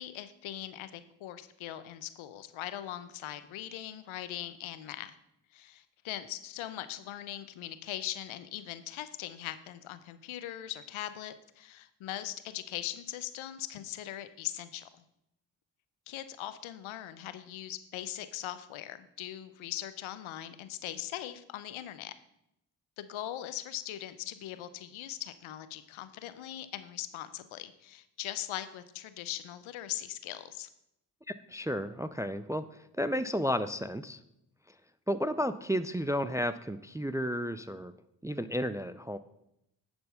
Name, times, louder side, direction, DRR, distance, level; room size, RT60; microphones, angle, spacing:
voice 1, 0.0-5.1 5.5-14.9 16.1-22.1 23.0-30.7, left 12 dB, 75° left, 13 dB, 0.7 m, -40 dB
voice 2, 31.3-34.2 35.1-37.9 38.2-39.2, equal, 5° right, 12 dB, 0.3 m, -32 dB
10.0 x 4.4 x 5.6 m, 0.80 s
supercardioid pair, 45°, 48 cm